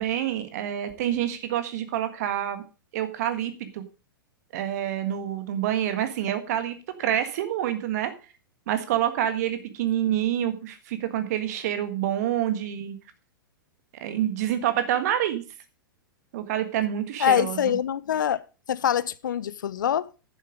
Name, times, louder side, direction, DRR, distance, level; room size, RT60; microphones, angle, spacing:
voice 1, 0.0-2.6 2.9-3.8 4.5-8.1 8.7-13.0 14.0-15.4 16.3-17.7, right 11 dB, 45° right, 1.6 m, -27 dB
voice 2, 17.2-18.4 18.7-20.1, left 9 dB, 60° left, 0.6 m, -24 dB
10.0 x 7.4 x 5.1 m
figure-of-eight pair, 105°, 12 cm